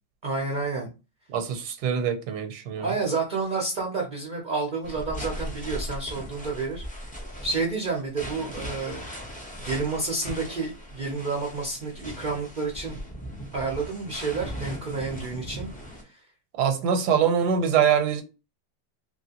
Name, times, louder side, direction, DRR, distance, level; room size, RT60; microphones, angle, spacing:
voice 1, 0.2-0.9 2.8-6.8 7.4-9.0 9.6-13.0 13.5-16.2, right 4 dB, 55° right, 0.5 m, -30 dB
voice 2, 1.3-2.9 16.6-18.2, right 7 dB, 80° right, 1.2 m, -24 dB
sound 1, 4.8-16.0, equal, 10° left, 0.3 m, -38 dB
3.0 x 2.7 x 2.8 m
omnidirectional pair, 1.8 m